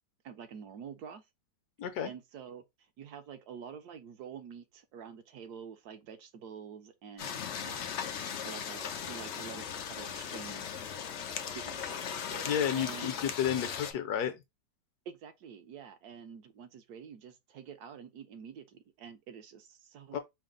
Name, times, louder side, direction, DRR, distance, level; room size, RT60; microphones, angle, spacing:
voice 1, 0.2-1.2 2.0-2.6 3.0-8.1 8.4-10.8 11.2-13.2 15.1-20.2, right 7 dB, 70° right, 1.1 m, -48 dB
voice 2, 1.8-2.1 12.4-14.4 20.1-20.2, left 9 dB, 70° left, 1.1 m, -31 dB
sound 1, 7.2-13.9, left 7 dB, 90° left, 0.6 m, -38 dB
4.8 x 2.0 x 3.8 m
omnidirectional pair, 1.9 m